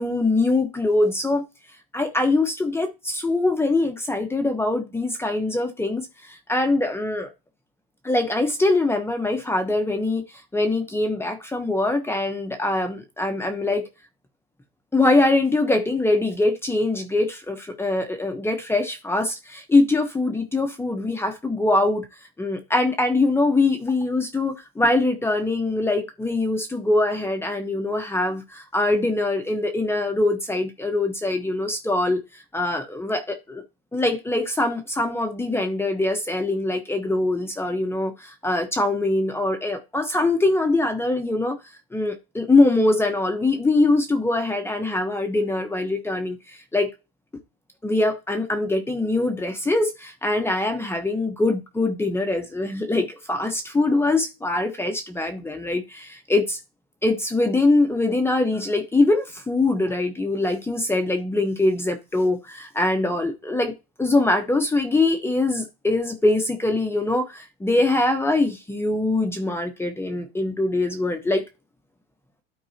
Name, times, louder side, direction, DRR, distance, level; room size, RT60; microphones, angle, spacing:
voice 1, 0.0-1.4 1.9-7.3 8.0-10.2 10.5-13.9 14.9-22.0 22.4-33.6 33.9-41.6 41.9-46.9 47.8-56.6 57.0-63.7 64.0-71.5, left 2 dB, 10° left, 1.0 m, -23 dB
12.5 x 4.7 x 2.8 m
supercardioid pair, 125°, 31 cm